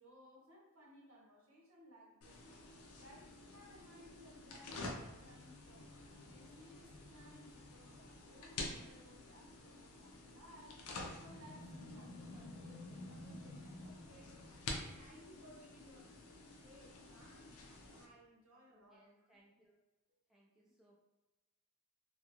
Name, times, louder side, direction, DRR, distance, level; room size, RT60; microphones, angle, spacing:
voice 1, 0.0-2.7 3.0-10.8 11.2-14.4 15.0-16.2 16.6-19.3, equal, 60° right, -3 dB, 0.8 m, -61 dB
sound 1, 2.2-18.0, left 2 dB, 85° left, 0.5 m, -49 dB
voice 2, 18.7-19.8 20.3-20.9, right 1 dB, ahead, -5 dB, 0.5 m, -69 dB
2.4 x 2.2 x 2.9 m, 1.1 s
head